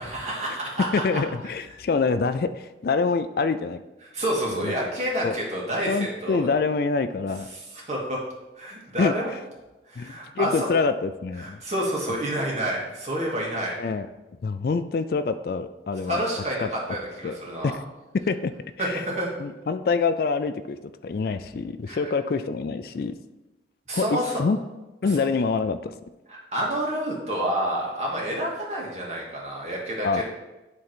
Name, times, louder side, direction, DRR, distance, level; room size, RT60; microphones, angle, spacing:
voice 1, 0.0-1.2 4.1-6.5 7.5-8.2 8.6-9.3 9.9-10.7 11.4-13.7 16.0-17.8 18.8-19.3 21.9-22.0 23.9-24.4 25.0-25.3 26.3-30.2, right 1 dB, 35° right, -3 dB, 2.0 m, -29 dB
voice 2, 0.9-3.8 4.6-4.9 5.2-5.4 5.8-7.5 9.0-9.1 10.0-11.6 13.8-14.1 14.4-16.2 16.6-16.7 17.2-17.4 17.6-17.8 18.3-18.5 18.8-19.0 19.4-20.8 21.0-23.1 23.9-24.6 25.0-25.9 30.0-30.2, left 4 dB, 55° left, 11 dB, 0.3 m, -26 dB
11.0 x 3.8 x 4.5 m, 1.1 s
head